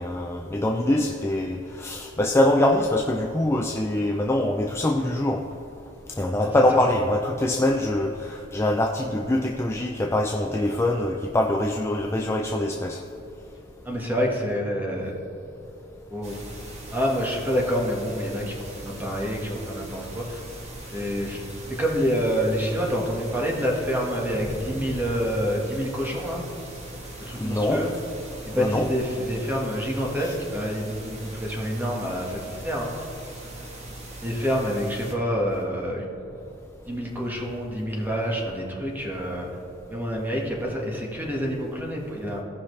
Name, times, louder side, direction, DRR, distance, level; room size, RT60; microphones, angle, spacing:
voice 1, 0.0-5.4 6.2-13.0 27.4-27.9 28.6-28.9 30.2-30.3, left 1 dB, 15° left, 2 dB, 0.4 m, -24 dB
voice 2, 6.4-6.8 13.8-15.1 16.1-16.4 16.9-20.4 20.9-21.4 21.7-26.4 27.2-27.9 28.4-33.0 34.2-36.1 36.9-39.5 39.9-42.4, equal, 10° right, -2 dB, 1.5 m, -27 dB
sound 1, 16.2-35.1, right 1 dB, 35° right, 1.4 m, -41 dB
sound 2, 24.3-25.9 26.7-26.9 32.7-32.8, equal, 35° left, 1.3 m, -39 dB
17.0 x 5.7 x 3.3 m, 2.9 s
head